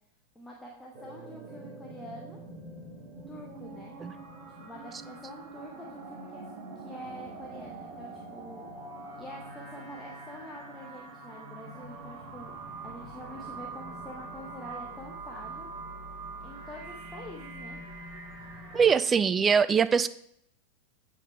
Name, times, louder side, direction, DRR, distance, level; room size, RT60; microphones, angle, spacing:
voice 1, 0.3-2.4 3.3-3.9 4.6-8.7 9.1-12.5 12.8-15.7 16.4-17.8, equal, 10° left, -2 dB, 1.0 m, -46 dB
sound 1, 0.9-18.9, right 3 dB, 35° right, 1.5 m, -44 dB
voice 2, 18.7-20.1, right 6 dB, 20° right, 15 dB, 0.3 m, -22 dB
9.0 x 4.0 x 4.4 m, 0.72 s
figure-of-eight pair, 90°, 0 cm